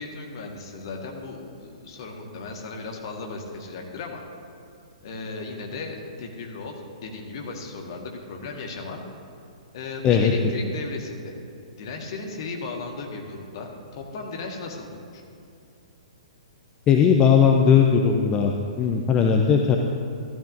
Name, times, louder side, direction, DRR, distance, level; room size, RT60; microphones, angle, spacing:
voice 1, 0.0-4.2 5.0-9.0 9.7-11.3 11.7-15.2, left 3 dB, 45° left, 1 dB, 1.6 m, -36 dB
voice 2, 16.9-19.8, left 7 dB, 20° left, 2 dB, 0.6 m, -18 dB
14.0 x 12.5 x 2.7 m, 2.5 s
figure-of-eight pair, 115°, 4 cm